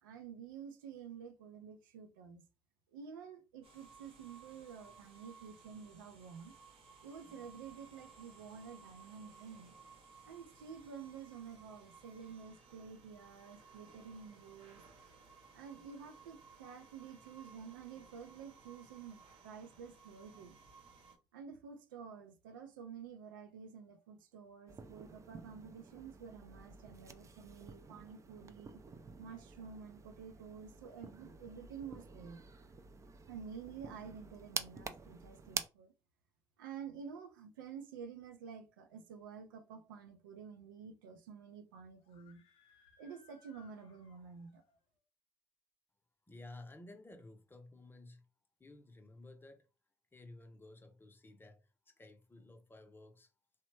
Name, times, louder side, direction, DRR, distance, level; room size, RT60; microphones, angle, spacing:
voice 1, 0.0-2.4 2.9-9.8 10.3-14.8 15.5-20.6 21.3-28.8 29.2-32.4 33.3-35.9 36.6-42.4 43.0-44.6, right 6 dB, 85° right, 0.4 m, -50 dB
sound 1, 3.6-21.2, right 4 dB, 55° right, 0.9 m, -60 dB
sound 2, 24.7-35.7, right 5 dB, 30° right, 0.4 m, -48 dB
Screaming, 42.0-44.8, left 8 dB, 60° left, 0.6 m, -67 dB
voice 2, 46.3-48.3 48.6-49.7 50.1-53.3, left 2 dB, 20° left, 0.6 m, -55 dB
2.9 x 2.1 x 3.1 m
hypercardioid pair, 55°, 11 cm